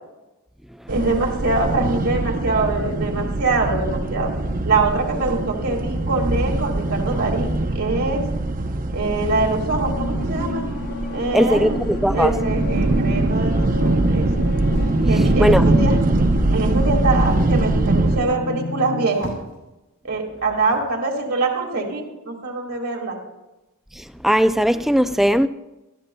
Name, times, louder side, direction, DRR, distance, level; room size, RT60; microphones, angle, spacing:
sound 1, 0.9-18.2, right 2 dB, 40° right, 0.7 m, -22 dB
voice 1, 0.9-4.3 4.6-8.2 8.9-10.7 11.1-11.8 12.1-14.3 15.1-16.0 16.5-19.3 20.0-23.2, right 3 dB, 70° right, 2.0 m, -24 dB
sound 2, 9.9-19.2, left 3 dB, 45° left, 0.7 m, -31 dB
voice 2, 11.3-12.3 15.4-15.6 24.0-25.5, equal, ahead, 0.3 m, -18 dB
sound 3, 14.7-15.7 16.5-16.9 18.8-19.7 20.7-21.0, equal, 65° left, 3.4 m, -39 dB
18.5 x 13.0 x 2.3 m
head